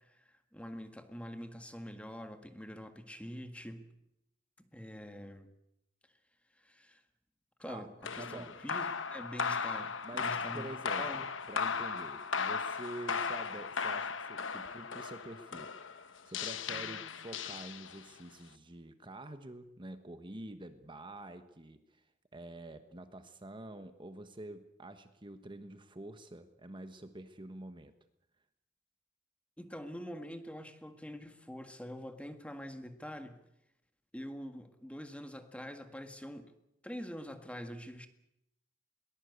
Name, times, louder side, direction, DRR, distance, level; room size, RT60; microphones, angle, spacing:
voice 1, 0.0-3.9 4.7-5.5 6.6-7.0 7.6-10.7 11.0-11.2 29.6-33.4 34.1-36.5 36.8-38.1, equal, 5° left, 8 dB, 1.7 m, -45 dB
sound 1, 8.0-18.2, left 5 dB, 70° left, 1.2 m, -37 dB
voice 2, 8.2-8.6 10.0-22.1 22.3-27.9, right 1 dB, 25° right, 9 dB, 1.2 m, -47 dB
22.0 x 19.5 x 8.2 m, 0.83 s
head